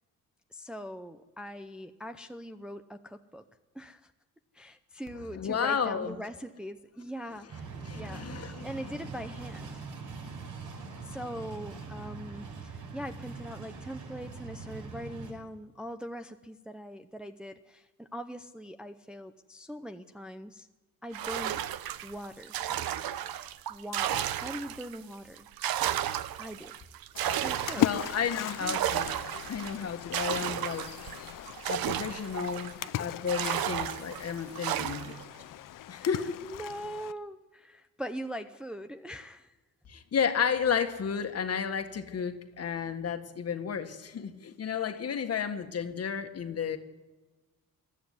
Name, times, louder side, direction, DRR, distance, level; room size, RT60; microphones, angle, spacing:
voice 1, 0.5-3.4 3.7-4.1 4.5-7.7 7.9-8.3 8.6-9.9 11.0-20.7 21.0-21.6 22.0-22.6 23.7-25.5 26.4-26.7 27.4-28.1 28.6-28.8 36.0-39.6, equal, 5° right, 7 dB, 0.6 m, -42 dB
voice 2, 5.4-6.2 7.9-8.7 27.8-29.1 29.5-30.9 31.7-35.1 35.9-36.4 39.9-46.8, left 7 dB, 45° left, 7 dB, 1.7 m, -32 dB
sound 1, 7.5-15.3, right 4 dB, 60° right, 6.1 m, -42 dB
sound 2, 21.1-25.0 25.4-32.9 33.3-35.2, right 11 dB, 85° right, 1.0 m, -33 dB
Splash splatter, 27.1-37.1, left 12 dB, 65° left, 0.7 m, -38 dB
21.5 x 13.5 x 9.6 m, 1.2 s
cardioid pair, 140°, 35 cm